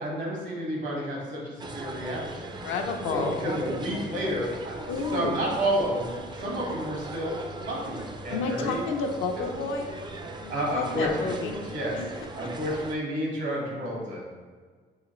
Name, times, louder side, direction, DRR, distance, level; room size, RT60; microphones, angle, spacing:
voice 1, 0.0-2.5 3.1-4.8 5.1-6.1 6.4-7.3 7.7-8.8 9.4-9.5 10.5-12.0 12.4-14.3, equal, 70° right, -2 dB, 1.3 m, -30 dB
sound 1, 1.6-13.0, right 2 dB, 25° right, 0.3 m, -39 dB
voice 2, 2.3-3.5 4.9-5.4 8.3-9.9 10.4-12.3, left 4 dB, 85° left, 3 dB, 0.5 m, -31 dB
4.9 x 2.5 x 3.0 m, 1.5 s
cardioid pair, 90°, 20 cm